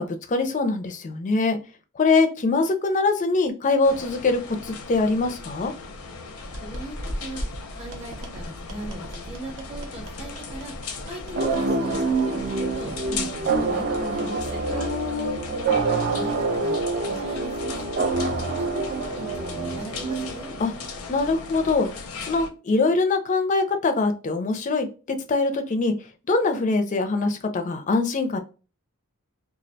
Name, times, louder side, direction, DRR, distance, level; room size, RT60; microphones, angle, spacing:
voice 1, 0.0-1.6 2.0-5.7 14.7-15.4 20.6-20.7 21.1-21.9 22.2-25.9 26.3-28.4, left 3 dB, 35° left, 6 dB, 0.4 m, -23 dB
sound 1, 3.8-22.5, left 4 dB, 85° left, 0.5 m, -38 dB
sound 2, 6.4-14.9, equal, 85° right, 0.7 m, -38 dB
voice 2, 6.6-7.0 7.2-7.4 7.8-10.7 11.1-14.6 15.5-18.8 19.1-20.5, right 1 dB, 30° right, 0 dB, 0.7 m, -39 dB
sound 3, 11.3-20.8, right 3 dB, 45° right, 0.3 m, -26 dB
2.3 x 2.1 x 2.6 m, 0.34 s
head